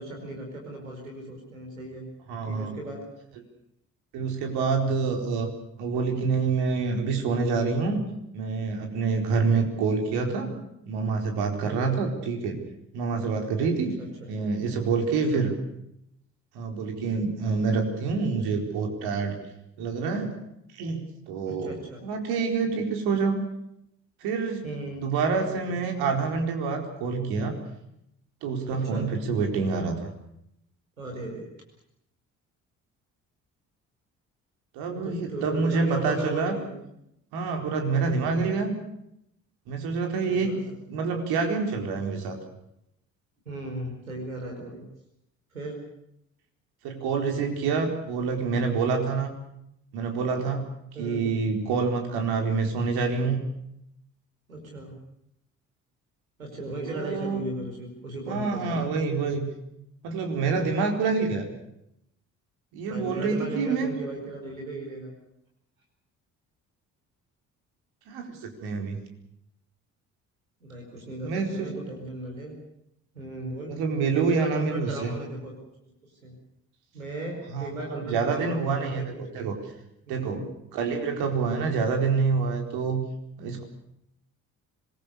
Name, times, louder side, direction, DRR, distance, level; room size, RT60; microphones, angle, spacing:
voice 1, 0.0-2.1 2.4-3.0 11.7-12.0 14.0-14.3 15.3-15.4 21.4-22.0 24.6-25.8 28.7-29.1 31.0-31.5 34.9-36.7 40.3-40.8 43.4-44.8 45.5-45.7 50.9-51.3 54.5-54.9 56.4-58.9 62.9-65.2 70.6-72.6 73.1-73.7 74.1-75.5 75.8-75.9 76.2-76.3 76.9-79.4 80.1-80.5 81.5-81.8, right 1 dB, 90° right, 1 dB, 4.9 m, -36 dB
voice 2, 2.3-2.8 4.1-5.5 5.8-8.0 8.3-10.5 10.9-12.6 12.9-13.9 14.3-15.6 16.5-19.4 19.8-20.3 20.7-21.8 22.0-23.4 24.2-24.6 25.0-27.6 28.4-30.1 34.7-36.5 37.3-38.8 39.7-40.6 40.9-42.3 46.8-49.3 49.9-50.7 51.0-53.4 56.9-57.5 58.3-59.5 60.0-61.5 62.7-63.9 68.1-69.0 71.2-71.7 73.8-75.1 77.5-79.5 80.1-80.4 80.7-83.0 83.4-83.6, right 4 dB, 65° right, 3 dB, 4.5 m, -27 dB
26.0 x 21.0 x 6.7 m, 0.78 s
figure-of-eight pair, 50°, 40 cm